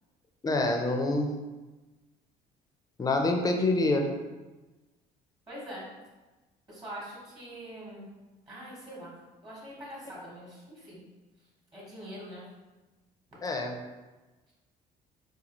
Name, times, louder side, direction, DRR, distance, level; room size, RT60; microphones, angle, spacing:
voice 1, 0.4-1.3 3.0-4.1 13.4-13.7, left 2 dB, 20° left, 3 dB, 0.5 m, -26 dB
voice 2, 5.5-5.8 6.7-8.1 8.5-9.1 9.4-11.0 11.7-12.4, equal, 25° right, -6 dB, 1.1 m, -43 dB
4.0 x 2.3 x 2.9 m, 1.2 s
cardioid pair, 110°, 17 cm